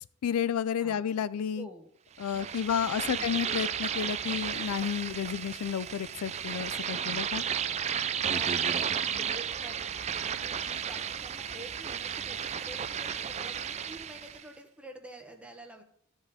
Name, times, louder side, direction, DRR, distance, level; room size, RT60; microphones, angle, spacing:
voice 1, 0.0-1.7 2.2-7.4, left 8 dB, 85° left, 0.4 m, -31 dB
voice 2, 1.5-1.9 2.3-3.3 7.3-7.9 8.3-15.8, right 1 dB, 5° right, 1.2 m, -48 dB
sound 1, 2.2-14.4, right 8 dB, 30° right, 0.4 m, -33 dB
13.0 x 5.5 x 4.1 m
head